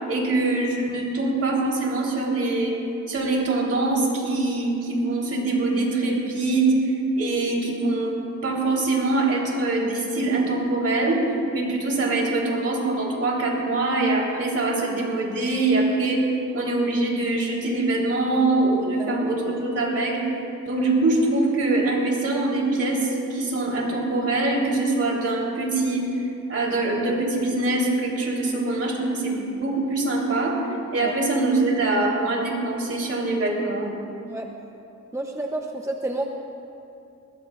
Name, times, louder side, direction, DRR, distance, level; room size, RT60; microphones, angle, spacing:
voice 1, 0.1-2.8 3.1-6.8 7.2-16.3 16.5-20.2 20.7-26.0 26.5-30.6 30.9-33.9, right 2 dB, 55° right, -2 dB, 3.9 m, -23 dB
voice 2, 35.1-36.3, right 2 dB, 10° right, 2 dB, 0.8 m, -30 dB
21.0 x 20.5 x 2.5 m, 2.7 s
wide cardioid pair, 110°, 30 cm